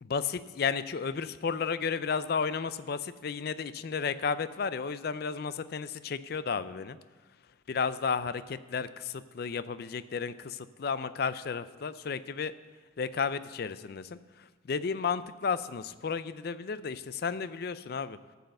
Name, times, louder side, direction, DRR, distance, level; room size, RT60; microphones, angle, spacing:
voice 1, 0.0-7.0 7.7-12.5 13.0-18.2, left 5 dB, 50° left, 14 dB, 0.4 m, -33 dB
13.0 x 5.5 x 7.7 m, 1.3 s
head